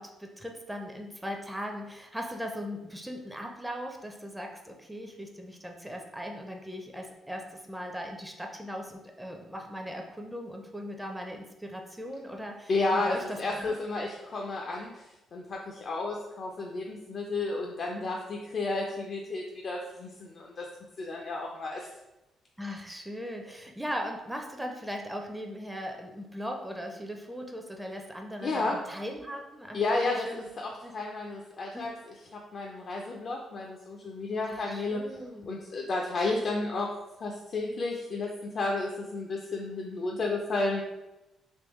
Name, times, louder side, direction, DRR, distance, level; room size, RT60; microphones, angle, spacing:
voice 1, 0.0-13.7 22.6-30.5 30.8-30.9 31.7-32.0 34.4-35.6 37.7-37.9, equal, 5° right, 2 dB, 0.4 m, -39 dB
voice 2, 12.7-20.7 21.0-21.9 28.4-28.8 29.7-31.9 32.3-35.0 35.5-36.9 37.2-40.8, left 3 dB, 50° left, 0 dB, 0.4 m, -32 dB
3.5 x 2.9 x 3.0 m, 0.99 s
cardioid pair, 90°, 0 cm